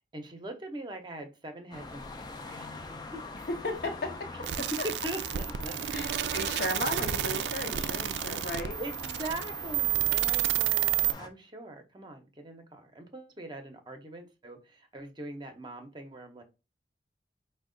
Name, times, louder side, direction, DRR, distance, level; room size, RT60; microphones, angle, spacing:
voice 1, 0.1-3.2 4.7-6.6 7.4-7.5 8.8-16.4, right 1 dB, 25° right, 0.6 m, -42 dB
sound 1, 1.7-11.3, left 3 dB, 25° left, 0.4 m, -43 dB
voice 2, 3.5-4.3 5.9-8.8, left 1 dB, 55° left, 0.8 m, -35 dB
sound 2, 4.4-11.1, right 13 dB, 70° right, 0.3 m, -30 dB
4.5 x 2.1 x 3.7 m
head